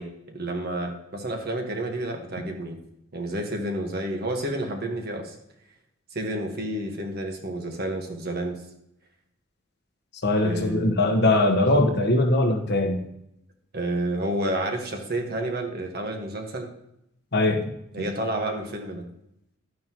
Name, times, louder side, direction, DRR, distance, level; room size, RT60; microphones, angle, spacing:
voice 1, 0.0-2.8 3.1-5.3 6.1-8.6 10.4-10.9 13.7-16.7 17.9-19.1, right 1 dB, 50° right, 3 dB, 1.5 m, -30 dB
voice 2, 10.2-13.0 17.3-17.6, left 2 dB, 55° left, 4 dB, 1.2 m, -21 dB
11.5 x 9.6 x 3.0 m, 0.79 s
head